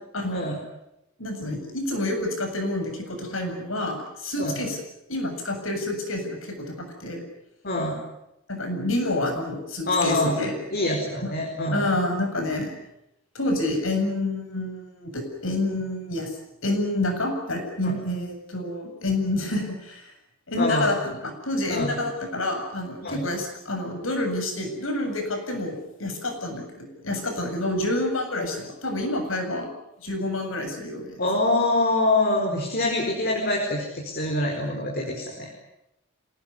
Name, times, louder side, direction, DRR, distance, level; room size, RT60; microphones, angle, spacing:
voice 1, 0.1-0.5 1.2-4.8 5.1-7.2 8.5-10.6 11.2-11.3 11.7-12.8 13.3-16.3 16.6-20.1 20.5-21.0 21.2-29.7 30.0-31.2, left 1 dB, 75° left, 5 dB, 7.7 m, -28 dB
voice 2, 4.4-4.7 7.6-8.0 9.8-11.8 17.8-17.9 20.6-20.9 21.7-21.9 23.0-23.2 31.2-35.5, left 2 dB, 50° left, 1 dB, 4.9 m, -25 dB
27.0 x 19.0 x 9.7 m, 0.87 s
head